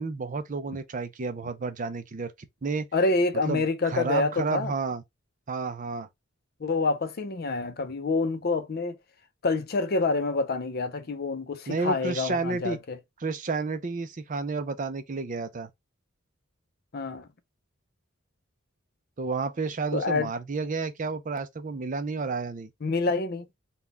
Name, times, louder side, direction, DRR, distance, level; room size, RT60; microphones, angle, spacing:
voice 1, 0.0-2.3 2.6-2.9 3.5-5.0 5.5-6.1 11.7-12.8 13.2-15.7 19.2-22.7, right 4 dB, 40° right, 0.5 m, -31 dB
voice 2, 2.9-4.7 6.6-9.0 9.4-13.0 16.9-17.3 19.9-20.3 22.8-23.5, left 3 dB, 50° left, 0.5 m, -27 dB
3.9 x 2.3 x 3.4 m
head